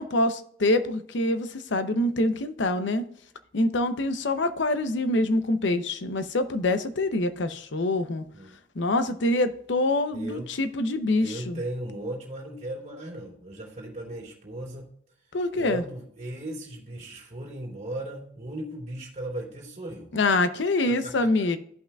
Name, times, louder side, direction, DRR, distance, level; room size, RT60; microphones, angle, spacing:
voice 1, 0.0-3.1 3.5-8.2 8.8-11.6 15.3-15.8 20.1-21.6, left 2 dB, 65° left, 0.7 m, -25 dB
voice 2, 10.1-10.5 11.2-14.9 15.6-20.1 20.8-21.3, right 1 dB, 40° right, 2.6 m, -37 dB
14.0 x 5.7 x 2.3 m
head